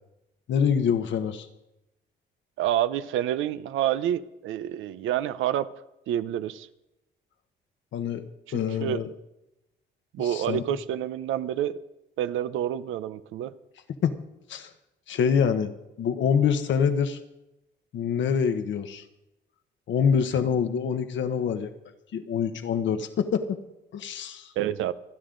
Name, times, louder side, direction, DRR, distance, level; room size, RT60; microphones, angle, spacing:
voice 1, 0.5-1.5 7.9-8.2 8.5-9.1 10.2-10.8 14.0-14.1 14.5-14.7 15.1-15.7 16.0-17.2 17.9-19.0 19.9-21.7 22.1-23.6 23.9-24.5, left 7 dB, 70° left, 9 dB, 1.2 m, -25 dB
voice 2, 2.6-5.7 6.1-6.7 8.5-9.0 10.1-11.8 12.2-13.5 24.6-24.9, right 11 dB, 85° right, 14 dB, 0.7 m, -28 dB
26.5 x 10.0 x 3.9 m, 0.93 s
cardioid pair, 90°, 20 cm